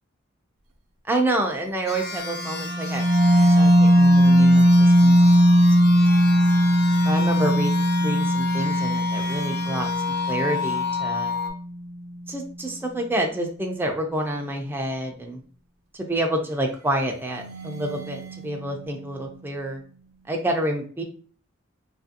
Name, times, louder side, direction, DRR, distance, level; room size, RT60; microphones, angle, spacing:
voice 1, 1.0-5.2 5.8-6.0 7.0-9.9 10.3-11.3 12.3-15.4 15.9-19.8 20.3-21.0, right 1 dB, 10° right, 2 dB, 0.3 m, -28 dB
sound 1, 1.9-11.5, left 5 dB, 50° left, 0.5 m, -30 dB
sound 2, 2.3-11.6 17.2-19.7, equal, 85° right, 0.5 m, -19 dB
2.8 x 2.4 x 2.6 m, 0.44 s
head